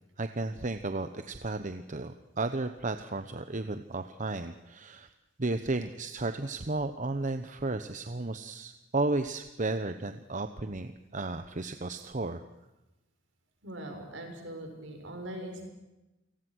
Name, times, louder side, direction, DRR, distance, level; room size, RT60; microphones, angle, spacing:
voice 1, 0.2-5.1 5.4-12.4, right 2 dB, 40° right, 9 dB, 1.0 m, -33 dB
voice 2, 13.6-15.7, right 1 dB, 65° right, 3 dB, 7.2 m, -41 dB
29.0 x 19.0 x 6.3 m, 1.0 s
head